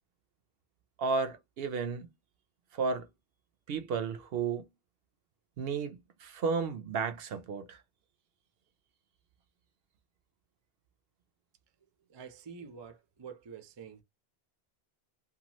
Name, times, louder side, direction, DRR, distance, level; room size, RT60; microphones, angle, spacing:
voice 1, 1.0-2.1 2.7-3.1 3.7-4.7 5.6-7.8, right 5 dB, 70° right, 0.7 m, -33 dB
voice 2, 12.1-14.0, right 6 dB, 40° right, 0.4 m, -47 dB
2.8 x 2.3 x 2.9 m
omnidirectional pair, 1.1 m